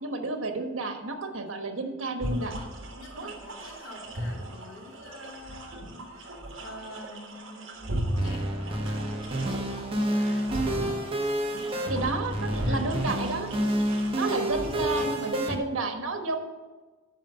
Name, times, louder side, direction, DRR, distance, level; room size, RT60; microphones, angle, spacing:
voice 1, 0.0-2.7 3.2-3.3 11.9-13.5 14.2-16.4, right 3 dB, 85° right, 5 dB, 1.2 m, -31 dB
sound 1, 2.2-15.3, right 1 dB, 70° right, 1.4 m, -37 dB
voice 2, 2.9-13.1, left 1 dB, 85° left, -4 dB, 3.3 m, -46 dB
sound 2, 8.2-15.6, right 1 dB, 30° right, 1.0 m, -29 dB
9.1 x 5.4 x 6.8 m, 1.3 s
head